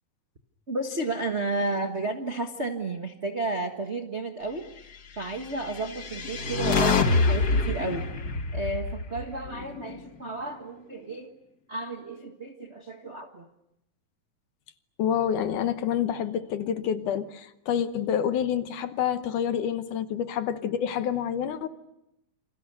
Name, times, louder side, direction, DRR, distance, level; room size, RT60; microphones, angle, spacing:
voice 1, 0.7-4.9 5.2-8.1 8.5-11.3 11.7-13.5, right 2 dB, 50° right, 3 dB, 0.7 m, -32 dB
sound 1, 5.6-9.9, left 3 dB, 40° left, 1.5 m, -26 dB
voice 2, 15.0-21.7, left 9 dB, 70° left, 10 dB, 2.4 m, -28 dB
28.5 x 26.5 x 6.8 m, 0.84 s
omnidirectional pair, 4.1 m